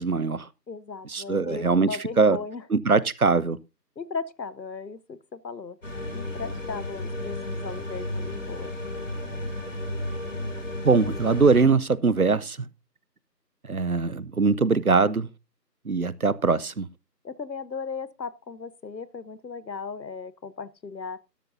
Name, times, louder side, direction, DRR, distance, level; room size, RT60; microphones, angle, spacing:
voice 1, 0.0-0.5 1.0-2.4 2.7-3.6 10.8-12.7 13.7-15.3 15.9-16.9, right 4 dB, 60° right, 0.7 m, -22 dB
voice 2, 0.7-2.6 4.0-5.8 6.1-8.7 17.2-21.2, left 5 dB, 85° left, 1.0 m, -36 dB
sound 1, 5.8-11.7, left 1 dB, 50° left, 2.6 m, -33 dB
12.5 x 11.5 x 2.6 m
figure-of-eight pair, 175°, 50 cm